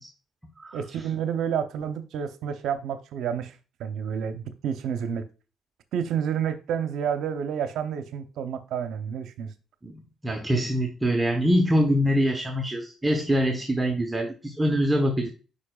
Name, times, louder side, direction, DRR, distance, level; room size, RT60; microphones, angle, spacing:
voice 1, 0.7-5.2 5.9-9.5, right 8 dB, 80° right, 0.7 m, -30 dB
voice 2, 9.8-15.3, equal, 15° right, 1.0 m, -24 dB
8.5 x 5.2 x 2.3 m
cardioid pair, 90°, 0 cm